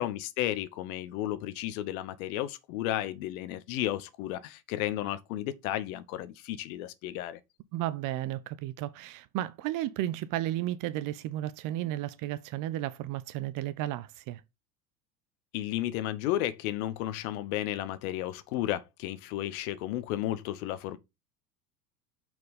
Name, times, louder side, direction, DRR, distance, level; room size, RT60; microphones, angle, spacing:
voice 1, 0.0-7.4 15.5-21.0, left 13 dB, 60° left, 1.0 m, -33 dB
voice 2, 7.7-14.4, right 14 dB, 40° right, 0.7 m, -33 dB
6.2 x 4.4 x 5.1 m
hypercardioid pair, 85°, 49 cm